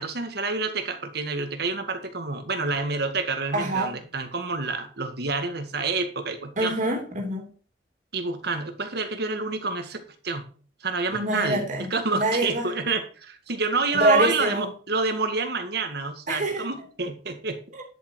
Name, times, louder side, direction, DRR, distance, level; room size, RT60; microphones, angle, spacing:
voice 1, 0.0-6.7 8.1-10.5 10.8-17.6, right 3 dB, 65° right, 6 dB, 2.0 m, -28 dB
voice 2, 3.5-3.9 6.6-7.5 11.1-12.7 13.9-14.6 16.3-16.6 17.7-17.8, right 1 dB, 45° right, 1 dB, 3.1 m, -25 dB
10.5 x 7.6 x 4.8 m, 0.40 s
head